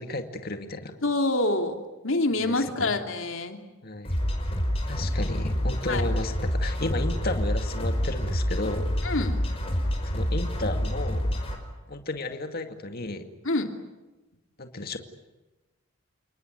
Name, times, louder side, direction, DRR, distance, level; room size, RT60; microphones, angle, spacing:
voice 1, 0.0-0.9 2.4-2.9 3.8-4.2 4.9-8.9 10.0-11.3 11.9-13.3 14.6-15.0, left 2 dB, 45° left, 6 dB, 2.2 m, -33 dB
voice 2, 1.0-1.8 2.0-3.6 5.9-6.0 9.0-9.4 13.4-13.7, left 2 dB, 65° left, 5 dB, 2.8 m, -26 dB
sound 1, 4.0-11.6, equal, 25° left, 5.1 m, -27 dB
30.0 x 19.5 x 9.5 m, 1.1 s
head